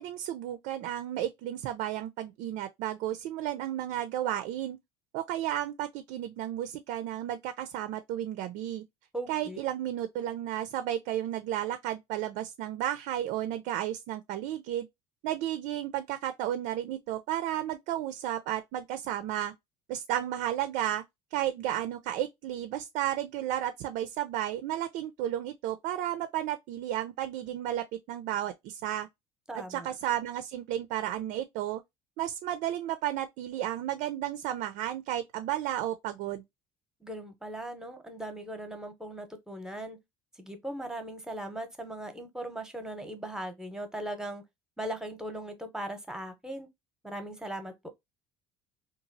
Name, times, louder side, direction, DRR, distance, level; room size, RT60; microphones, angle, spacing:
voice 1, 0.0-4.8 5.1-8.8 9.3-14.9 15.2-19.5 19.9-21.0 21.3-29.1 29.5-31.8 32.2-36.4, right 12 dB, 65° right, 0.4 m, -33 dB
voice 2, 9.1-9.6 29.5-29.9 37.0-40.0 40.4-44.4 44.8-46.7 47.0-47.9, right 1 dB, 5° right, 0.7 m, -39 dB
2.8 x 2.3 x 2.6 m
hypercardioid pair, 75°, 14 cm